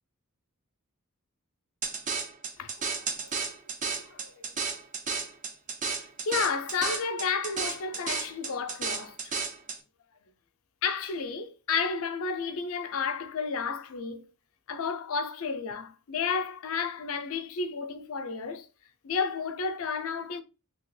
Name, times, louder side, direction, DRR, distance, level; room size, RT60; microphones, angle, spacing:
sound 1, 1.8-9.8, right 5 dB, 35° right, 0.5 m, -33 dB
voice 1, 2.6-3.3 4.1-4.3 6.2-9.3 10.8-14.3 14.7-18.7 19.0-20.4, left 5 dB, 65° left, 0.5 m, -32 dB
2.8 x 2.8 x 3.1 m
head